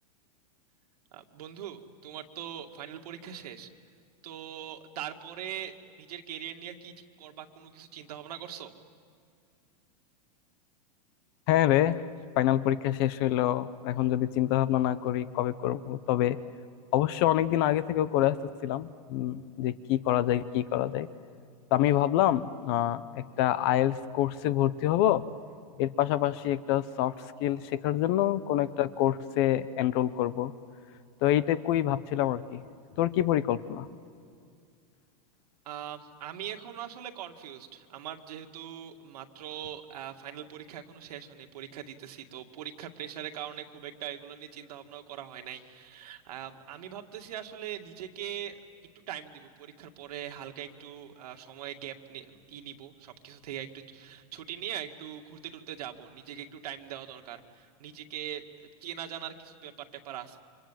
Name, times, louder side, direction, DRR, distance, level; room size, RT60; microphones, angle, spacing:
voice 1, 1.1-3.7 4.2-5.7 6.0-8.7 35.6-48.6 48.9-60.4, right 10 dB, 70° right, 5 dB, 2.3 m, -41 dB
voice 2, 11.5-12.0 12.4-16.4 16.9-18.4 18.6-21.1 21.7-25.2 25.8-27.1 27.4-30.5 31.2-32.6 33.0-33.9, left 13 dB, 35° left, 15 dB, 0.8 m, -26 dB
29.5 x 26.5 x 7.6 m, 2.3 s
supercardioid pair, 165°, 21 cm